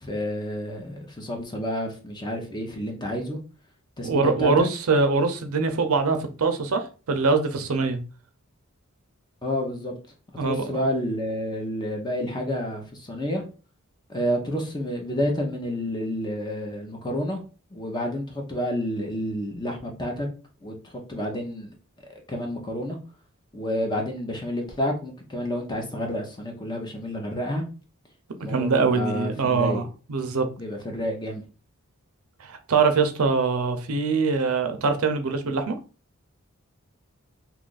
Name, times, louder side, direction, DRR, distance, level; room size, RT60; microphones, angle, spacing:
voice 1, 0.0-3.4 4.0-4.7 9.4-9.9 10.4-13.4 14.1-17.4 17.7-20.3 20.6-21.7 22.3-23.0 23.5-27.6 28.4-29.8 30.6-31.4, equal, 20° left, 2 dB, 0.6 m, -29 dB
voice 2, 4.0-8.0 10.4-10.8 28.4-30.5 32.4-35.8, right 4 dB, 75° right, 7 dB, 0.6 m, -23 dB
2.9 x 2.4 x 3.8 m, 0.35 s
head